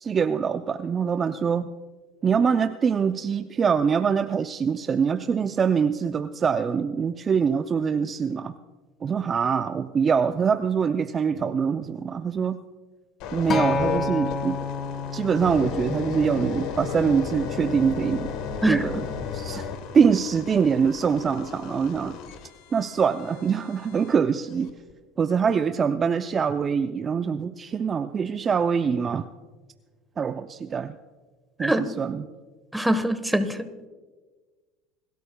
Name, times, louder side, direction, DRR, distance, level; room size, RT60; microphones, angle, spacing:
voice 1, 0.0-1.7 2.2-8.5 9.0-12.6 13.3-14.6 15.1-18.3 18.7-19.0 19.3-19.7 19.9-22.2 22.7-24.7 25.2-29.3 30.2-31.0 31.6-32.3, right 6 dB, 30° right, 10 dB, 0.4 m, -24 dB
sound 1, 13.2-24.1 24.7-24.9, left 6 dB, 65° left, 1.3 m, -34 dB
Acoustic guitar, 13.5-17.8 18.6-18.7, left 4 dB, 35° left, 1.5 m, -30 dB
voice 2, 32.7-33.6, right 1 dB, 5° right, 10 dB, 1.2 m, -23 dB
28.0 x 13.0 x 2.3 m, 1.4 s
hypercardioid pair, 90°, 0 cm